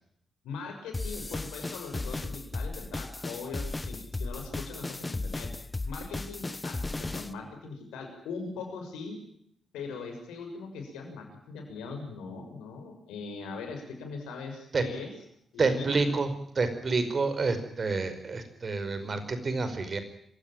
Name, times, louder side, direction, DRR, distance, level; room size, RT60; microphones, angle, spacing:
voice 1, 0.4-5.5 5.9-9.2 9.7-15.1 15.5-16.1, left 4 dB, 85° left, 4 dB, 6.7 m, -40 dB
sound 1, 0.9-7.3, left 2 dB, 25° left, 1.4 m, -35 dB
voice 2, 15.6-16.3 16.5-20.0, right 3 dB, 50° right, 10 dB, 5.1 m, -28 dB
27.0 x 16.5 x 9.1 m, 0.71 s
hypercardioid pair, 40°, 0 cm